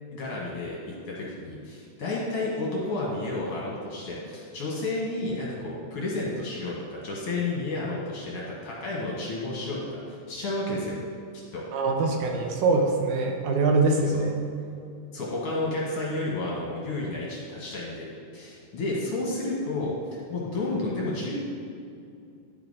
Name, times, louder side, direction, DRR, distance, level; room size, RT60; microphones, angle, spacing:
voice 1, 0.1-11.0 11.5-11.6 14.1-14.2 15.1-18.1 18.3-21.4, left 2 dB, 55° left, -4 dB, 2.1 m, -31 dB
voice 2, 11.7-14.4, right 3 dB, 75° right, 2 dB, 2.2 m, -23 dB
11.0 x 5.0 x 4.8 m, 2.5 s
omnidirectional pair, 3.6 m